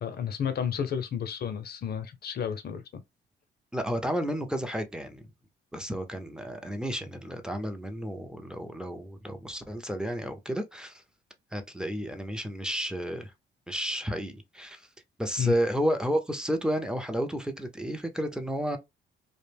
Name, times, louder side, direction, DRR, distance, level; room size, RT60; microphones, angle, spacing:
voice 1, 0.0-2.8 15.4-15.6, left 8 dB, 50° left, 0.6 m, -31 dB
voice 2, 3.7-5.2 5.7-11.0 11.5-13.3 13.7-14.8 15.2-18.8, equal, 5° right, 0.5 m, -31 dB
2.4 x 2.1 x 3.3 m
cardioid pair, 90°, 20 cm